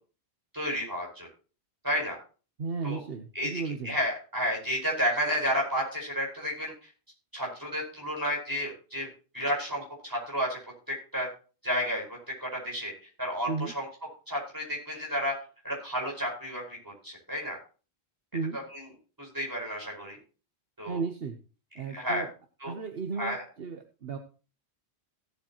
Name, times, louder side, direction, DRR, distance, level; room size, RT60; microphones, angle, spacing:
voice 1, 0.5-1.3 1.8-2.2 2.8-3.0 3.4-6.9 7.3-9.1 9.3-10.6 10.9-11.3 11.6-12.9 13.2-13.9 14.3-15.4 15.6-17.6 18.5-18.9 19.2-20.2 20.8-21.0 21.9-22.2 22.6-22.7 23.2-23.4, equal, 20° right, -2 dB, 5.2 m, -31 dB
voice 2, 2.6-3.9 13.5-13.7 18.3-18.6 20.9-21.4 21.7-22.3 22.7-24.2, right 4 dB, 60° right, 5 dB, 1.2 m, -34 dB
17.0 x 8.2 x 3.0 m, 0.36 s
omnidirectional pair, 1.1 m